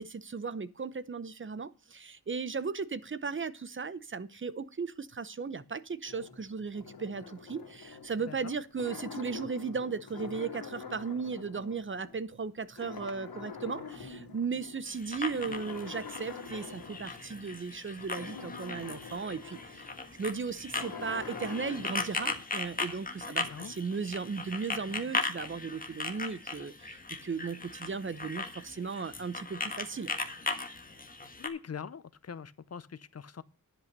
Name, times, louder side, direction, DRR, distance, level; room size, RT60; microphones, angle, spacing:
voice 1, 0.0-19.9 20.2-30.1, right 5 dB, 35° right, 0.7 m, -36 dB
sound 1, 6.0-12.5 12.8-14.8 15.2-22.4, left 5 dB, 90° left, 2.5 m, -45 dB
sound 2, 14.9-31.5, left 3 dB, 25° left, 1.5 m, -38 dB
voice 2, 23.4-23.7 31.4-33.4, left 6 dB, 45° left, 0.7 m, -43 dB
10.5 x 5.9 x 6.5 m
wide cardioid pair, 110°, 35 cm